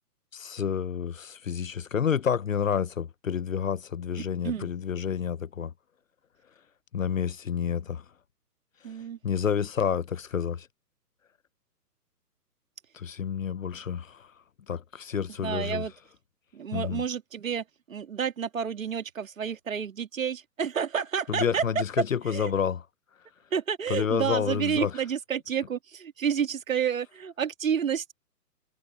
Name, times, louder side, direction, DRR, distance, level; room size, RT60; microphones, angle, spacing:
voice 1, 0.3-5.7 6.9-8.0 8.9-9.0 9.2-10.7 12.9-14.3 14.7-15.8 16.7-17.0 21.3-22.8 23.9-24.9, left 7 dB, 55° left, 0.8 m, -29 dB
voice 2, 8.8-9.2 15.4-15.9 16.5-21.6 22.3-22.5 23.5-28.1, right 7 dB, 55° right, 2.4 m, -30 dB
hypercardioid pair, 180°, 48 cm